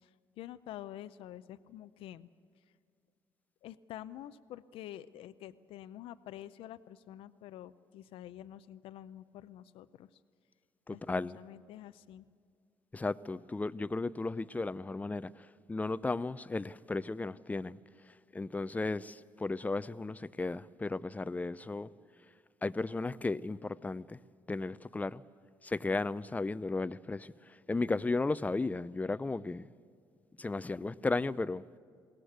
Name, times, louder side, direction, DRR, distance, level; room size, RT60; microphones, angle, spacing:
voice 1, 0.0-2.3 2.6-2.7 3.6-10.2 10.9-12.3, left 12 dB, 80° left, 0.5 m, -48 dB
voice 2, 10.9-11.4 12.9-17.8 18.3-21.9 22.6-24.2 24.5-25.2 25.6-29.7 30.4-31.6, left 3 dB, 15° left, 0.5 m, -35 dB
21.0 x 17.5 x 8.0 m
cardioid pair, 90°, 9 cm